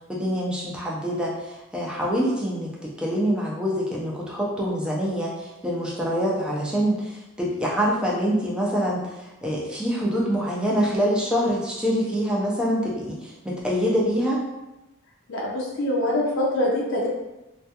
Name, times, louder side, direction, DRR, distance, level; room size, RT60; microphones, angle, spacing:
voice 1, 0.1-14.4, equal, 5° right, -4 dB, 0.4 m, -25 dB
voice 2, 15.3-17.1, left 1 dB, 60° left, -4 dB, 0.5 m, -24 dB
2.3 x 2.2 x 2.7 m, 1.0 s
head